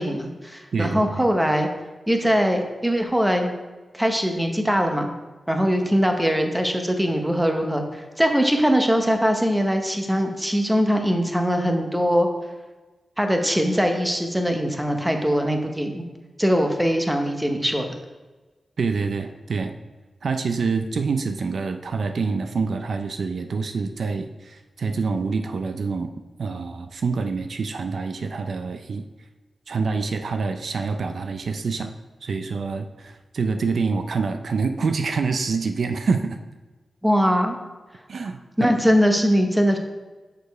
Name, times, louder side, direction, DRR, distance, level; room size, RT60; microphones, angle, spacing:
voice 1, 0.0-1.7 2.1-3.5 3.9-5.1 5.5-12.3 13.2-16.0 16.4-18.0 37.0-37.6 38.6-39.8, equal, 5° right, 4 dB, 0.8 m, -21 dB
voice 2, 0.7-1.3 18.8-19.7 20.2-26.1 26.4-29.0 29.7-31.9 32.2-36.4 38.1-38.7, right 4 dB, 65° right, 7 dB, 0.4 m, -26 dB
6.5 x 5.1 x 4.6 m, 1.2 s
wide cardioid pair, 125°, 0 cm